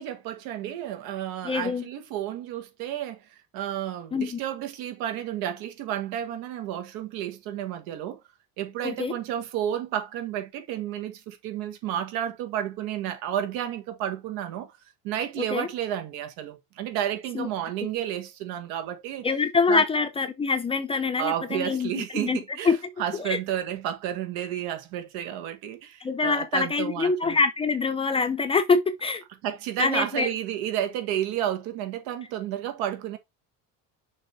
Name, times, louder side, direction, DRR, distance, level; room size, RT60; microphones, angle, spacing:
voice 1, 0.0-3.2 3.5-8.2 8.6-14.7 15.0-19.3 19.7-19.8 21.2-27.4 29.4-33.2, right 11 dB, 80° right, 1.6 m, -31 dB
voice 2, 1.4-1.9 4.1-4.4 8.8-9.1 15.5-15.7 17.3-17.5 19.2-22.4 22.6-22.8 23.2-23.4 26.0-29.2 29.8-30.3, left 4 dB, 15° left, 0.5 m, -25 dB
6.4 x 3.5 x 4.4 m
cardioid pair, 170°, 35 cm